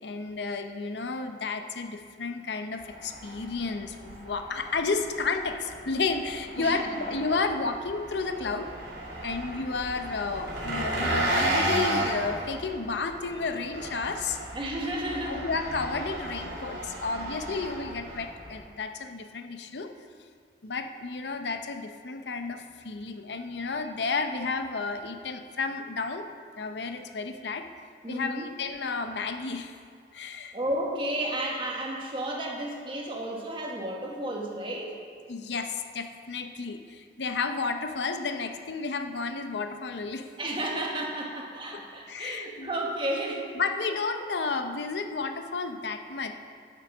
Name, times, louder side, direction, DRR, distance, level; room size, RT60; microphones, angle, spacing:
voice 1, 0.0-8.7 9.2-14.4 15.2-19.9 20.6-26.3 26.6-27.7 28.1-29.8 30.1-30.6 35.3-40.3 41.7-41.8 42.1-42.7 43.6-46.3, left 4 dB, 75° left, 7 dB, 0.7 m, -32 dB
Engine, 2.8-18.6, right 1 dB, 80° right, 2.3 m, -34 dB
voice 2, 6.6-6.9 14.5-15.5 28.0-28.5 30.5-35.0 40.4-43.5, right 1 dB, 30° right, -1 dB, 1.5 m, -32 dB
9.0 x 7.7 x 6.0 m, 2.1 s
head